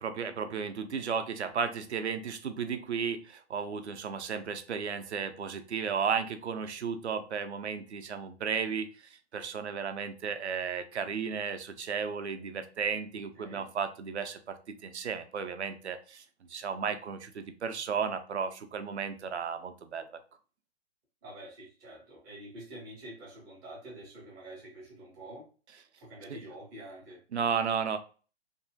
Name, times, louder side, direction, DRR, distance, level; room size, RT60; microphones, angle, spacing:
voice 1, 0.0-8.9 9.3-16.2 16.5-20.2 26.3-26.4 27.3-28.0, right 6 dB, 80° right, 9 dB, 0.6 m, -34 dB
voice 2, 13.1-13.7 21.2-25.5 26.0-27.2, right 1 dB, 10° right, -3 dB, 0.4 m, -47 dB
2.6 x 2.4 x 2.6 m, 0.37 s
figure-of-eight pair, 130°, 33 cm